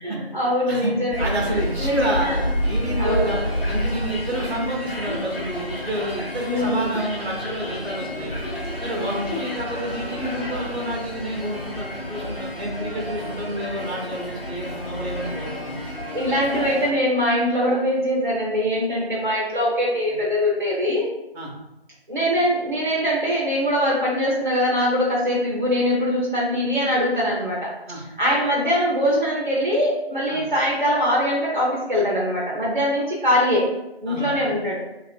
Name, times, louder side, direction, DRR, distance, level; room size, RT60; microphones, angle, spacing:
voice 1, 0.0-2.4 3.0-3.3 6.4-7.0 9.0-9.3 16.1-21.1 22.1-27.7 28.2-33.7 34.0-34.8, equal, 50° right, -6 dB, 0.7 m, -22 dB
sound 1, 1.1-16.9, equal, 60° left, 0.8 m, -29 dB
voice 2, 1.2-8.3 8.8-15.8 21.3-21.5 27.9-28.0 30.3-30.4 34.1-34.3, right 1 dB, 80° right, -1 dB, 0.9 m, -29 dB
2.6 x 2.5 x 2.4 m, 0.93 s
figure-of-eight pair, 175°, 32 cm